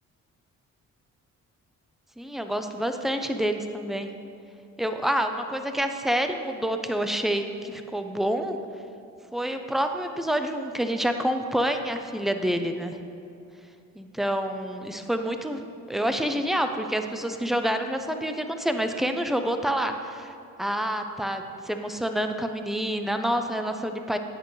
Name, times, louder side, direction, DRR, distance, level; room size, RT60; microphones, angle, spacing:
voice 1, 2.2-4.1 4.8-8.6 9.3-13.0 14.0-15.6 15.9-20.3 20.6-24.2, equal, ahead, 6 dB, 0.6 m, -28 dB
10.0 x 8.2 x 3.2 m, 2.6 s
cardioid pair, 90°, 30 cm